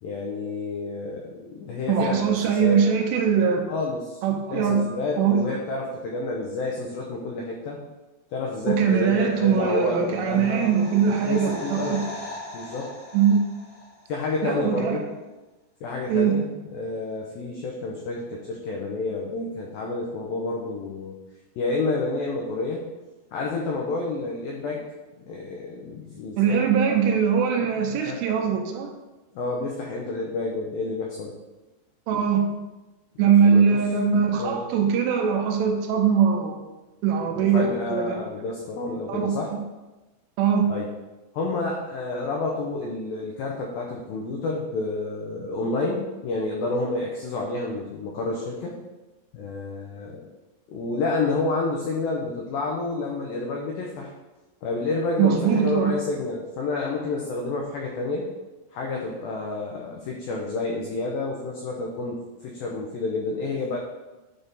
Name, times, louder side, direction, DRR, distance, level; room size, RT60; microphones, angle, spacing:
voice 1, 0.0-2.9 3.7-4.2 4.5-7.8 8.3-10.8 11.1-12.0 12.5-12.9 14.1-15.0 15.8-16.5 16.7-21.2 21.6-22.8 23.3-24.8 25.2-27.2 27.9-28.2 29.3-31.3 33.4-33.8 34.4-34.6 37.4-39.5 40.7-40.9 41.3-48.7 49.3-50.3 50.7-54.1 54.6-58.3 58.7-63.8, left 3 dB, 85° left, -1 dB, 2.0 m, -29 dB
voice 2, 1.9-3.6 4.2-4.8 5.2-5.4 8.7-12.0 13.1-13.4 14.4-15.0 16.1-16.3 26.4-28.9 32.1-32.4 33.2-36.7 37.0-38.2 39.1-39.6 40.4-40.7 55.2-55.9, right 7 dB, 85° right, 3 dB, 2.8 m, -21 dB
sound 1, 9.5-14.4 14.6-14.7, left 1 dB, 60° left, 4.1 m, -40 dB
9.6 x 3.6 x 4.0 m, 1.1 s
omnidirectional pair, 5.1 m